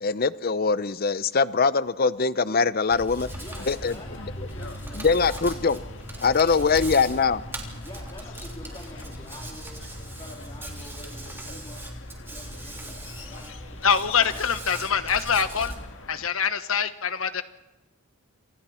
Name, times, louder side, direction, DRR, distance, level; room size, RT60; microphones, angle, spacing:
voice 1, 0.0-3.3 3.7-3.9 5.0-5.8 6.2-7.4, left 4 dB, 45° left, 16 dB, 0.7 m, -22 dB
Hands, 2.9-15.8, right 1 dB, 10° right, 3.3 m, -39 dB
sound 1, 3.2-16.3, left 1 dB, 65° left, 1.8 m, -43 dB
voice 2, 3.4-5.7 6.3-7.0 7.8-9.8 10.2-11.8 12.2-13.8 14.2-14.4, left 1 dB, 25° left, -1 dB, 3.2 m, -46 dB
voice 3, 13.8-15.7 16.1-17.4, left 7 dB, 90° left, 11 dB, 1.4 m, -24 dB
28.5 x 27.0 x 4.4 m, 1.1 s
head